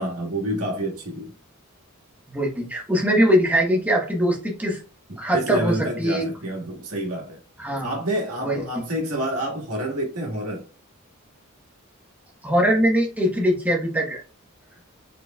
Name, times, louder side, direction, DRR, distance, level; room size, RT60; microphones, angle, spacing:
voice 1, 0.0-1.4 5.3-7.4 7.8-10.6, right 1 dB, 85° right, 1.6 m, -28 dB
voice 2, 2.3-4.8 5.2-6.2 7.6-7.9 8.4-8.6 12.4-14.2, equal, 5° right, 1.1 m, -21 dB
4.3 x 4.2 x 2.3 m
head